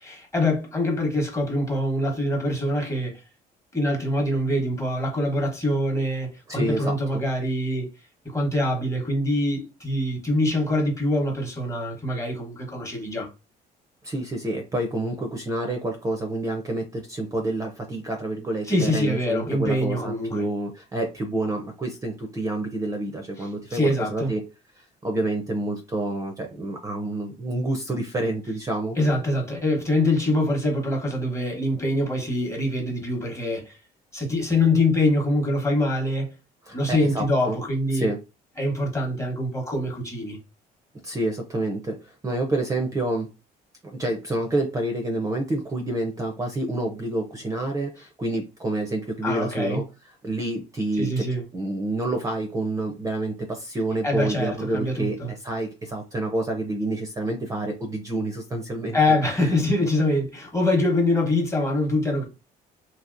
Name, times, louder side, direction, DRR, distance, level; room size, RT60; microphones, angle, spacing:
voice 1, 0.0-3.2 3.7-7.9 8.2-13.3 18.7-20.5 23.4-24.3 29.0-33.8 34.1-36.3 36.7-38.1 38.6-40.4 49.2-49.8 51.0-51.4 54.0-55.3 58.9-62.2, left 1 dB, 15° left, 1.0 m, -24 dB
voice 2, 6.5-7.2 14.0-24.4 24.8-29.0 36.7-37.6 37.9-38.2 41.0-43.3 43.8-49.8 50.2-51.2 51.5-59.0, right 2 dB, 20° right, 0.5 m, -28 dB
2.8 x 2.8 x 2.5 m
cardioid pair, 110°, 17 cm